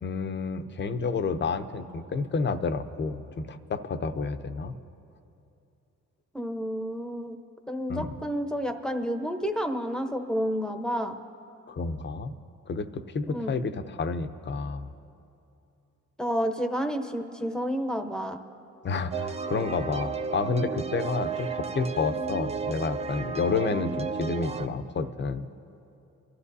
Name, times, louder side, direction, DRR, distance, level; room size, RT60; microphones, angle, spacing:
voice 1, 0.0-4.7 7.9-8.1 11.7-12.3 12.7-14.9 18.8-25.5, left 4 dB, 40° left, 9 dB, 0.7 m, -30 dB
voice 2, 6.3-7.4 7.7-11.1 13.2-13.5 16.2-18.4, equal, ahead, 6 dB, 0.9 m, -30 dB
sound 1, 19.1-24.7, right 5 dB, 20° right, 0.5 m, -33 dB
28.5 x 12.5 x 2.7 m, 2.7 s
cardioid pair, 90°, 30 cm